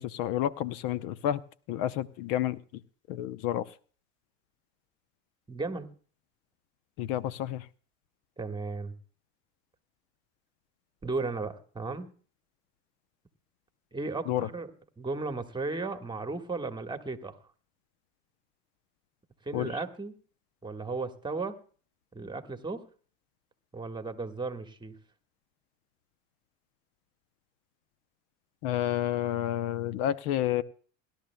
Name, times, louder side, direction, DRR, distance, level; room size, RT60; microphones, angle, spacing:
voice 1, 0.0-1.4 1.7-2.6 3.1-3.7 7.0-7.7 14.3-14.5 19.5-19.7 28.6-30.6, left 12 dB, 65° left, 16 dB, 0.8 m, -30 dB
voice 2, 5.5-5.9 8.4-8.9 11.0-12.1 13.9-14.7 15.0-17.4 19.4-20.1 20.6-21.6 22.1-22.8 23.7-24.9, right 3 dB, 10° right, 8 dB, 1.4 m, -35 dB
24.0 x 12.0 x 2.2 m, 0.42 s
supercardioid pair, 100°, 37 cm